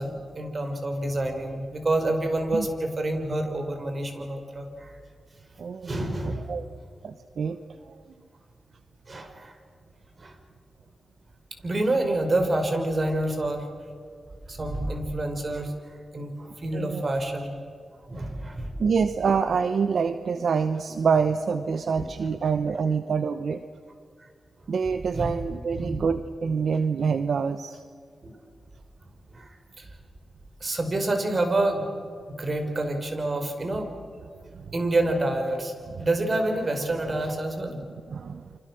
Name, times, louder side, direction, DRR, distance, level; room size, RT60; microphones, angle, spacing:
voice 1, 0.0-4.9 5.8-6.5 9.1-9.5 10.2-10.3 11.6-13.6 14.5-15.7 16.1-17.6 18.1-18.7 25.1-25.4 25.7-26.0 28.2-28.3 29.3-29.5 29.8-29.9 30.6-31.8 32.4-33.9 34.7-35.7 36.0-37.8, right 2 dB, 45° right, 5 dB, 5.6 m, -27 dB
voice 2, 5.6-5.9 6.5-6.7 7.0-7.6 7.9-8.0 16.7-17.1 18.8-23.6 24.7-27.8 38.1-38.4, right 5 dB, 75° right, 10 dB, 0.9 m, -26 dB
29.5 x 26.0 x 6.4 m, 2.2 s
cardioid pair, 50°, 0 cm